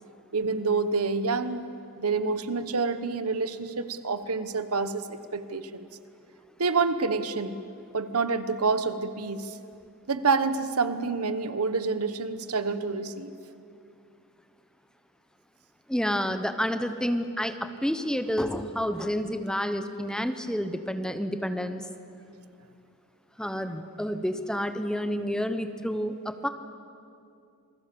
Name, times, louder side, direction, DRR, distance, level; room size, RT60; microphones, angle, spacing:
voice 1, 0.3-1.6 2.0-5.9 6.6-7.6 7.9-9.6 10.1-13.3, right 4 dB, 85° right, 12 dB, 1.2 m, -28 dB
voice 2, 15.9-21.8 23.4-26.5, equal, 5° left, 9 dB, 0.9 m, -29 dB
27.5 x 21.0 x 7.0 m, 2.5 s
head